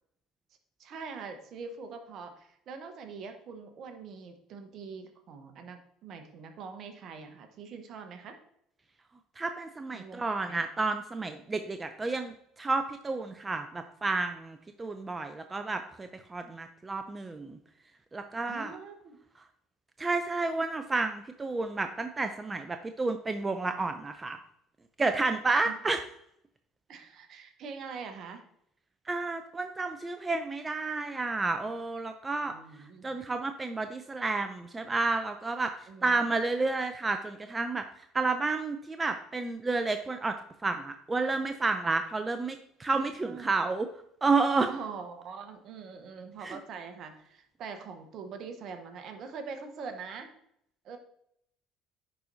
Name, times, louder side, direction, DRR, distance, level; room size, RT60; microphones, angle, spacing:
voice 1, 0.8-8.4 9.9-10.6 18.5-19.2 25.6-25.8 26.9-28.4 32.4-33.2 35.9-36.2 42.9-43.5 44.7-50.3 50.8-51.0, right 5 dB, 55° right, 6 dB, 1.0 m, -43 dB
voice 2, 9.4-17.6 18.1-18.7 20.0-24.4 25.0-26.0 29.1-32.5 33.0-35.7 36.0-37.8 38.1-40.3 40.6-43.9 44.2-44.7 46.4-46.6, right 3 dB, 25° right, 8 dB, 0.5 m, -30 dB
10.0 x 4.3 x 2.7 m, 0.73 s
hypercardioid pair, 70°, 0 cm